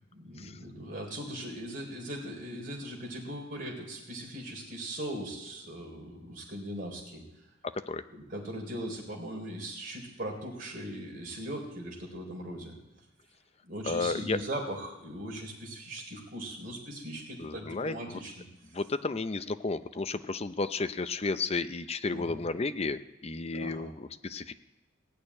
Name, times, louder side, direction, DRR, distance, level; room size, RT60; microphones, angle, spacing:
voice 1, 0.1-7.2 8.3-12.7 13.7-18.3 22.1-22.4 23.5-23.9, right 1 dB, 45° right, -1 dB, 3.9 m, -39 dB
voice 2, 7.6-8.0 13.8-14.4 17.4-18.2 18.7-24.5, left 3 dB, 30° left, 11 dB, 0.6 m, -33 dB
17.0 x 6.7 x 9.7 m, 0.97 s
head